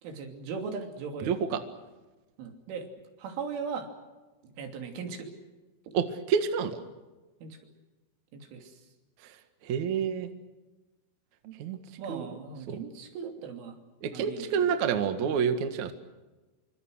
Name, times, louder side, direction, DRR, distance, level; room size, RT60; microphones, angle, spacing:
voice 1, 0.0-1.4 2.4-2.9 3.2-3.9 4.4-5.3 7.4-7.6 8.3-8.8 11.4-11.6 12.0-13.8 14.1-14.7, right 5 dB, 80° right, 4 dB, 5.4 m, -38 dB
voice 2, 1.3-1.6 5.9-6.8 9.2-9.3 9.6-10.3 11.6-11.8 12.1-12.3 12.7-12.8 14.0-15.9, right 7 dB, 55° right, 8 dB, 2.3 m, -28 dB
27.0 x 25.0 x 6.4 m, 1.2 s
omnidirectional pair, 5.5 m